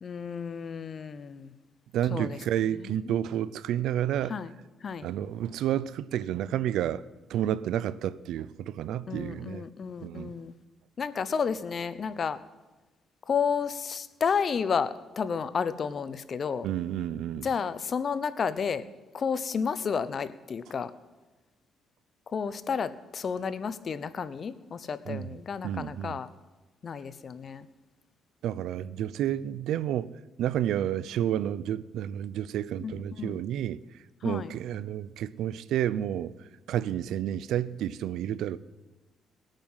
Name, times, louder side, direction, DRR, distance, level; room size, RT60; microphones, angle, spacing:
voice 1, 0.0-1.5 2.1-2.4 2.8-3.1 4.3-4.5 4.8-5.1 9.1-10.5 11.0-12.4 13.3-16.7 17.4-18.8 19.1-20.9 22.3-26.3 26.8-27.7 32.8-33.4 34.2-34.5, left 6 dB, 45° left, 0.8 m, -31 dB
voice 2, 1.9-4.4 5.0-7.0 7.3-9.6 10.0-10.3 16.6-17.5 25.1-26.2 28.4-33.8 34.2-38.6, right 11 dB, 85° right, 0.5 m, -30 dB
19.0 x 9.0 x 5.6 m
cardioid pair, 90°, 0 cm